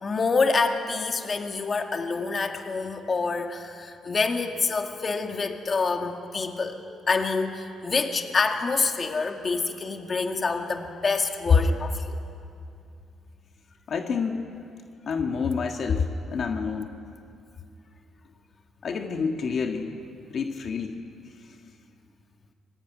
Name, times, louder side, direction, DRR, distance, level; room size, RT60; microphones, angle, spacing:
voice 1, 0.0-6.8 7.1-12.2, left 4 dB, 30° left, 4 dB, 2.0 m, -27 dB
voice 2, 13.9-14.4 15.1-17.0 18.8-19.9 20.3-21.0, left 5 dB, 50° left, 4 dB, 1.7 m, -28 dB
26.5 x 23.5 x 9.4 m, 2.5 s
cardioid pair, 140°, 0 cm